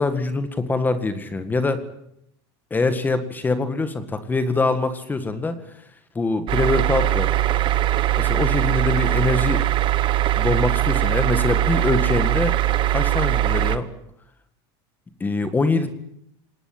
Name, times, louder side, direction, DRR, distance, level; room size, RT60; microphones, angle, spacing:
voice 1, 0.0-1.8 2.7-5.6 6.2-7.3 8.2-9.6 10.4-12.6 12.9-13.9 15.2-15.9, left 3 dB, 15° left, 11 dB, 1.9 m, -23 dB
sound 1, 6.5-13.8, right 13 dB, 35° right, 1.2 m, -21 dB
26.5 x 20.0 x 8.9 m, 0.78 s
supercardioid pair, 145°, 14 cm